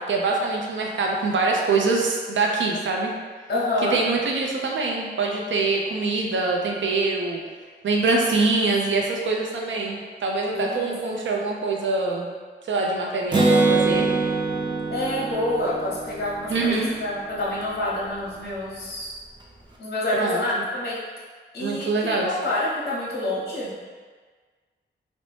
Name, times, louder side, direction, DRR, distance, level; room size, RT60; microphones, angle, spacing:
voice 1, 0.0-3.1 3.9-7.4 7.8-12.3 12.7-14.1 16.5-16.9 20.2-20.4 21.6-22.3, right 3 dB, 85° right, 0 dB, 0.5 m, -24 dB
voice 2, 3.5-4.0 8.6-8.7 10.5-11.3 14.9-19.1 19.8-21.0 21.5-23.7, left 1 dB, 60° left, -6 dB, 0.7 m, -28 dB
Acoustic guitar, 13.3-17.0, right 3 dB, 25° right, 0.4 m, -23 dB
2.7 x 2.0 x 3.2 m, 1.5 s
wide cardioid pair, 135°, 19 cm